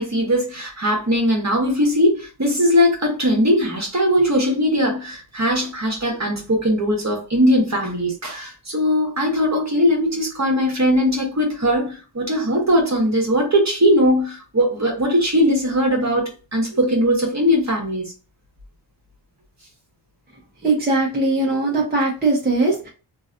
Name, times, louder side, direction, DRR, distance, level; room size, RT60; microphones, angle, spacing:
voice 1, 0.0-16.2 16.5-18.1, equal, 40° right, 1.3 m, -19 dB
voice 2, 20.6-22.9, right 2 dB, 20° right, 1.1 m, -20 dB
3.0 x 2.8 x 2.5 m
wide cardioid pair, 90°, 43 cm